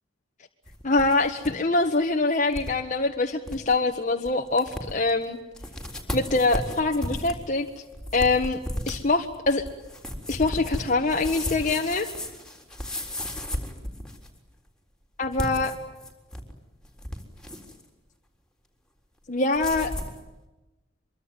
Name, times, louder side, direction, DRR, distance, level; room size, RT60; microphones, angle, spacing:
sound 1, 0.7-1.5 1.8-1.9 2.5-2.7 3.1-3.2 3.5-3.8 4.3-4.4 4.6-5.1 5.5-14.4 15.2-16.5 16.8-17.8 19.5-20.2, left 1 dB, 5° left, 3.8 m, -34 dB
voice 1, 0.8-5.4 6.1-7.7 8.1-8.6 8.9-9.6 10.3-12.1 15.2-15.7 19.3-19.9, left 3 dB, 40° left, 3 dB, 1.5 m, -24 dB
25.0 x 23.5 x 9.3 m, 1.1 s
head